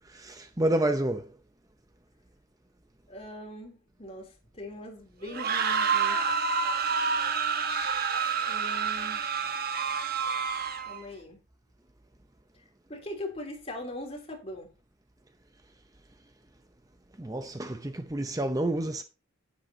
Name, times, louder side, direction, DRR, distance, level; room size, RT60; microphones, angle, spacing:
voice 1, 0.2-1.3 17.2-19.0, right 1 dB, 15° right, 0.7 m, -29 dB
voice 2, 3.1-6.2 7.8-8.0 8.5-9.2 10.9-11.4 12.9-14.7, left 1 dB, 30° left, 3.2 m, -41 dB
sound 1, 5.3-11.0, right 5 dB, 45° right, 1.2 m, -28 dB
10.5 x 10.5 x 2.8 m
head